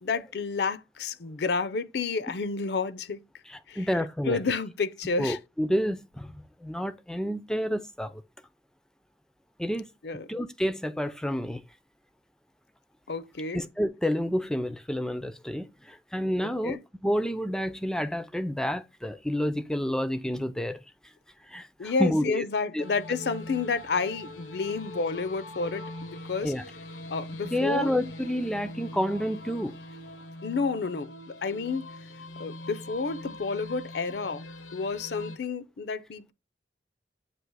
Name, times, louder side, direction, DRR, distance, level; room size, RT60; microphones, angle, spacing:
voice 1, 0.0-3.2 3.7-3.8 4.2-5.4 10.0-10.4 13.1-13.6 16.6-16.8 21.8-26.5 27.1-27.9 30.4-31.9 32.4-36.3, left 4 dB, 65° left, 0.5 m, -30 dB
voice 2, 3.5-4.4 5.2-8.2 9.6-9.9 10.3-11.6 13.5-20.8 21.5-22.4 22.7-22.8 26.4-26.7 27.5-29.8, equal, 5° left, 0.4 m, -29 dB
sound 1, 22.8-35.4, left 1 dB, 90° left, 0.8 m, -42 dB
7.8 x 2.9 x 4.6 m
head